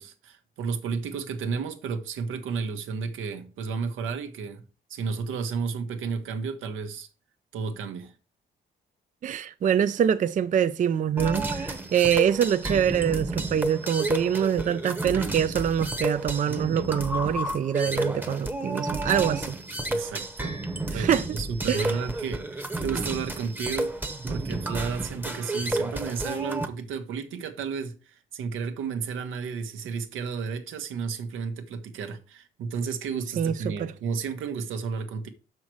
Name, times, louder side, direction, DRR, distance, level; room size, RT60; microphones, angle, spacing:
voice 1, 0.0-4.6 4.9-7.1 7.5-8.1 19.9-20.6 20.9-23.9 24.3-35.3, right 5 dB, 85° right, 1.1 m, -32 dB
voice 2, 9.2-19.6 20.9-21.3 21.7-22.0 33.4-33.9, right 8 dB, 40° right, 0.4 m, -25 dB
sound 1, 11.2-26.7, right 2 dB, 10° right, 0.9 m, -31 dB
6.2 x 5.7 x 4.6 m
cardioid pair, 90°, 20 cm